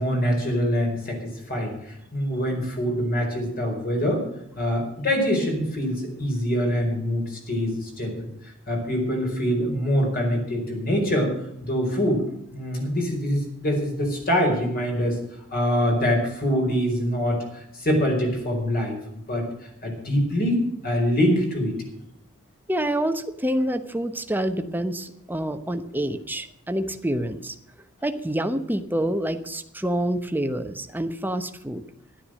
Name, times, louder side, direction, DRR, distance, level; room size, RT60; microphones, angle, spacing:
voice 1, 0.0-4.2 4.6-8.3 8.7-11.3 11.6-12.2 12.5-15.2 15.5-19.5 19.8-21.8, equal, 45° left, 1 dB, 4.7 m, -24 dB
voice 2, 22.7-27.5 28.0-31.8, right 1 dB, 10° right, 8 dB, 0.9 m, -27 dB
13.0 x 11.5 x 6.4 m, 0.80 s
head